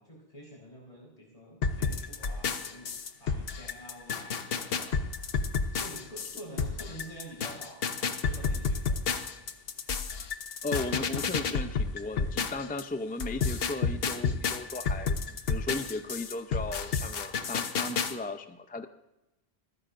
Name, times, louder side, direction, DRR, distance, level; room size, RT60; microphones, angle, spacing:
voice 1, 0.0-5.0 5.7-9.0, equal, 35° left, -3 dB, 4.3 m, -48 dB
sound 1, 1.6-12.8 13.2-18.1, left 5 dB, 60° left, 1.0 m, -31 dB
voice 2, 10.6-15.2 15.5-18.9, left 2 dB, 10° left, 8 dB, 0.4 m, -36 dB
25.0 x 9.7 x 2.6 m, 0.96 s
omnidirectional pair, 1.1 m